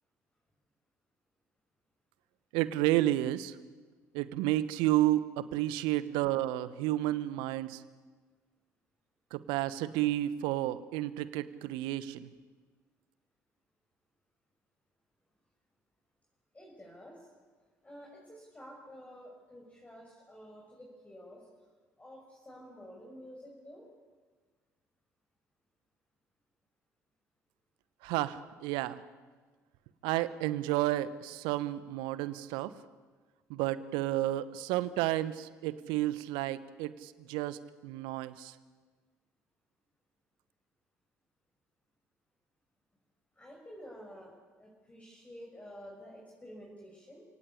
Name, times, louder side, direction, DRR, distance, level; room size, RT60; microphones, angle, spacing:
voice 1, 2.5-3.6 4.1-7.8 9.3-12.3 28.0-29.0 30.0-32.7 33.5-38.5, right 15 dB, 65° right, 15 dB, 1.1 m, -31 dB
voice 2, 16.5-17.3 17.8-21.5 22.0-23.9 43.3-44.3 44.6-47.2, equal, 15° left, -2 dB, 6.3 m, -50 dB
29.5 x 18.0 x 8.5 m, 1.4 s
figure-of-eight pair, 55°, 9 cm